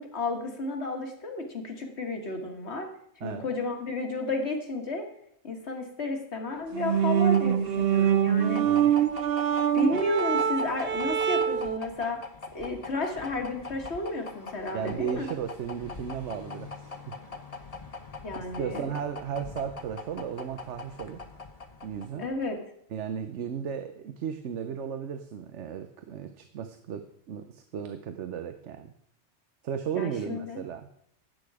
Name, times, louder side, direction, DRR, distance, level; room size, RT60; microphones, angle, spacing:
voice 1, 0.0-2.9 3.2-5.0 5.4-8.7 9.7-12.2 12.5-15.3 18.2-18.8 22.2-22.6 30.0-30.6, left 2 dB, 70° left, 4 dB, 2.1 m, -32 dB
sound 1, 6.6-22.6, left 4 dB, 35° left, 1.0 m, -43 dB
sound 2, 6.7-11.8, right 9 dB, 60° right, 0.8 m, -24 dB
voice 2, 14.7-17.2 18.6-21.2 21.8-22.3 22.9-28.9 29.6-30.9, right 8 dB, 85° right, 9 dB, 1.1 m, -35 dB
12.5 x 8.8 x 4.8 m, 0.72 s
omnidirectional pair, 1.2 m